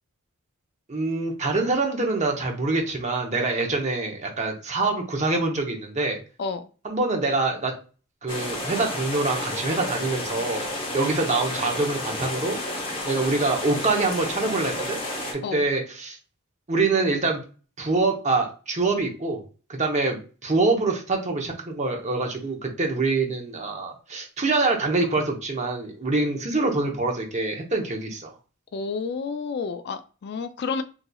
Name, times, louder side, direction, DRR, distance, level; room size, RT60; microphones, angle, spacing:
voice 1, 0.9-6.2 6.8-7.7 8.2-10.7 10.9-12.6 13.0-15.0 15.3-16.2 16.7-17.4 17.8-19.4 19.7-28.3, right 3 dB, 35° right, 2 dB, 0.8 m, -25 dB
sound 1, 8.3-15.3, left 1 dB, 25° left, 0.9 m, -31 dB
voice 2, 28.7-30.8, left 4 dB, 50° left, 10 dB, 0.3 m, -30 dB
3.8 x 2.9 x 2.3 m, 0.36 s
head